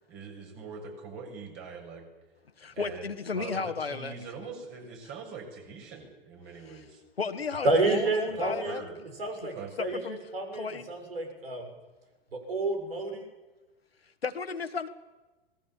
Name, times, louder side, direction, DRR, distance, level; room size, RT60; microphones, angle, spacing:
voice 1, 0.1-2.1 2.7-7.0 7.6-7.8 8.3-9.0 9.6-9.7, right 5 dB, 40° right, 3 dB, 7.2 m, -43 dB
voice 2, 2.6-4.1 7.2-8.8 10.0-10.2 10.5-10.9 14.2-14.9, left 5 dB, 85° left, 8 dB, 1.9 m, -33 dB
voice 3, 7.6-8.8 9.2-11.7 12.3-13.3, right 2 dB, 75° right, 4 dB, 6.7 m, -29 dB
27.0 x 20.0 x 7.4 m, 1.2 s
figure-of-eight pair, 100°, 29 cm